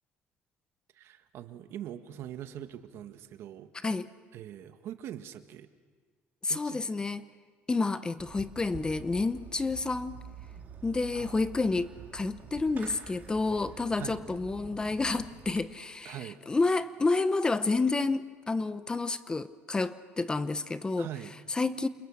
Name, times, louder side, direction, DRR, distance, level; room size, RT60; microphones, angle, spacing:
voice 1, 0.9-3.7 4.3-5.7 6.5-6.8 11.1-11.4 14.0-14.2 16.0-16.4 21.0-21.3, right 11 dB, 65° right, 9 dB, 1.5 m, -42 dB
voice 2, 6.4-7.3 7.7-10.2 10.8-16.2 16.5-21.1 21.5-21.9, left 3 dB, 15° left, 13 dB, 0.8 m, -29 dB
Fireworks, 8.2-15.6, right 6 dB, 35° right, 3.9 m, -47 dB
29.5 x 27.5 x 7.3 m, 1.5 s
cardioid pair, 125°, 5 cm